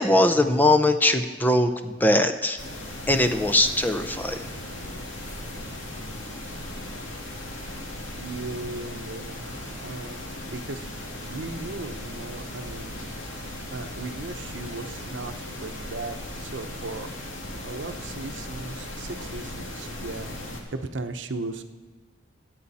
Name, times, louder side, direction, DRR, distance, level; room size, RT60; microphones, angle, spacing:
voice 1, 0.0-2.6 3.1-4.4, left 1 dB, 10° left, 8 dB, 0.5 m, -21 dB
sound 1, 2.6-20.6, left 1 dB, 85° left, 2.2 m, -37 dB
voice 2, 8.1-10.2 10.5-10.9 11.3-12.9 13.7-17.1 17.6-21.6, right 3 dB, 70° right, 7 dB, 0.8 m, -37 dB
23.5 x 8.5 x 4.2 m, 1.4 s
head